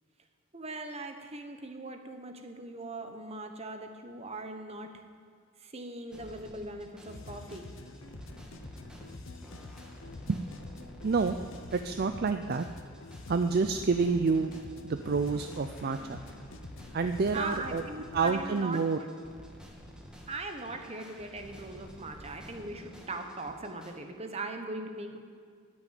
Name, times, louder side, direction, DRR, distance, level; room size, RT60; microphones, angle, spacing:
voice 1, 0.5-4.9 5.6-7.7 17.3-18.8 20.3-25.2, right 2 dB, 30° right, 5 dB, 1.0 m, -40 dB
sound 1, 6.1-23.9, equal, 5° right, 1.3 m, -50 dB
sound 2, 7.1-18.5, left 2 dB, 65° left, 0.8 m, -47 dB
voice 2, 11.0-11.4 11.7-12.7 13.3-14.5 14.8-16.2 16.9-17.8 18.1-19.0, right 4 dB, 45° right, 8 dB, 0.4 m, -28 dB
13.5 x 6.4 x 9.3 m, 2.1 s
head